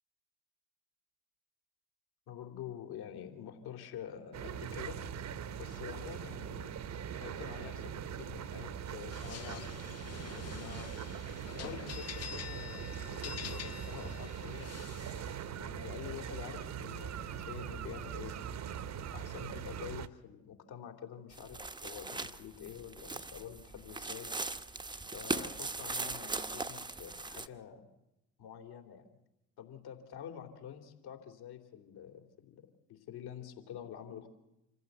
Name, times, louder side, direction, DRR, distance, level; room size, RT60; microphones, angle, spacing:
voice 1, 2.3-5.0 5.5-6.8 7.1-9.8 10.1-15.0 15.6-18.3 19.1-24.3 25.1-27.9 28.4-29.0 29.6-34.3, left 9 dB, 55° left, 4 dB, 3.3 m, -47 dB
sound 1, 4.3-20.1, right 8 dB, 35° right, 1.2 m, -41 dB
sound 2, 9.1-15.4, left 9 dB, 35° left, 0.9 m, -47 dB
sound 3, 21.3-27.5, right 3 dB, 10° right, 1.1 m, -39 dB
26.5 x 15.0 x 8.1 m, 0.93 s
figure-of-eight pair, 60°, 45 cm